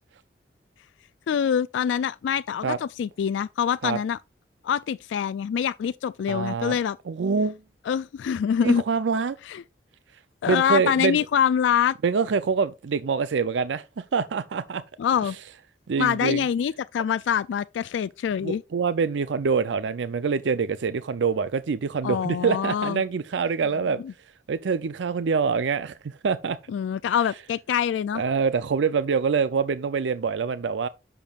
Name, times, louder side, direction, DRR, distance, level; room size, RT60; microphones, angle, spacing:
voice 1, 1.3-4.2 4.6-7.0 7.9-8.8 9.5-9.6 10.4-11.9 15.0-15.4 16.0-18.6 22.0-23.0 24.0-24.1 26.7-28.2, left 8 dB, 90° left, 0.3 m, -25 dB
voice 2, 6.3-6.8 7.1-7.6 8.6-9.4 10.5-11.2 12.0-14.8 15.2-15.3 15.9-16.4 18.4-24.0 24.5-26.6 28.1-30.9, right 5 dB, 85° right, 0.5 m, -25 dB
10.5 x 6.8 x 2.4 m
head